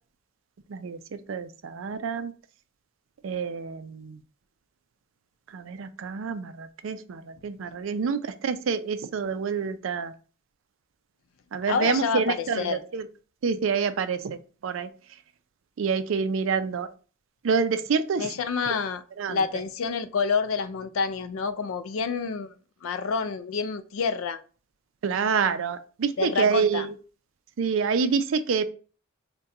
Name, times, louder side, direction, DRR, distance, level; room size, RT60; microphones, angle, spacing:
voice 1, 0.7-2.3 3.2-4.2 5.5-10.1 11.5-13.0 13.4-14.9 15.8-16.9 17.4-18.3 19.2-19.4 25.0-26.9 27.6-28.6, right 5 dB, 70° right, 0.4 m, -27 dB
voice 2, 11.7-12.8 18.2-19.0 19.3-22.5 22.8-24.4 26.2-26.9, left 5 dB, 80° left, 0.4 m, -28 dB
4.1 x 2.2 x 3.7 m
head